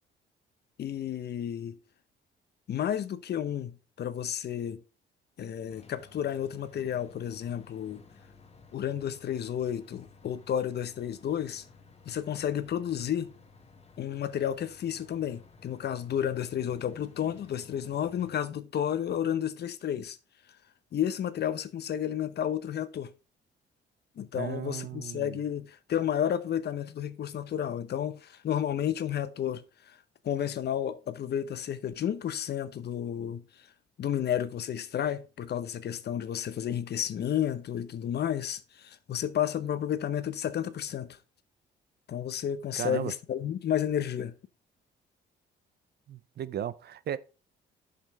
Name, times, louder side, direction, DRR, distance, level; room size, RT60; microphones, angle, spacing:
voice 1, 0.8-1.8 2.7-4.8 5.4-8.0 8.7-11.6 12.0-13.3 14.0-20.2 20.9-23.1 24.2-30.0 30.2-33.4 34.0-41.2 42.1-44.3, left 9 dB, 55° left, 0.7 m, -31 dB
sound 1, 5.7-18.4, left 4 dB, 30° left, 1.3 m, -55 dB
voice 2, 24.3-25.4 42.8-43.1 46.1-47.2, right 10 dB, 55° right, 0.6 m, -35 dB
7.6 x 5.6 x 4.2 m
cardioid pair, 90°, 20 cm